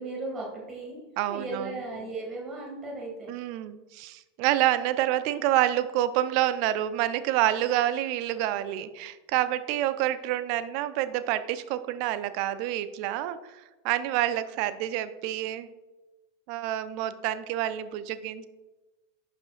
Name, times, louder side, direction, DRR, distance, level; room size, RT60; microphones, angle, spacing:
voice 1, 0.0-1.0 1.3-3.3, right 2 dB, 20° right, -2 dB, 2.4 m, -36 dB
voice 2, 1.2-1.7 3.3-15.7 16.5-18.5, right 13 dB, 45° right, 13 dB, 0.4 m, -28 dB
11.0 x 5.1 x 2.5 m, 1.1 s
figure-of-eight pair, 90°, 0 cm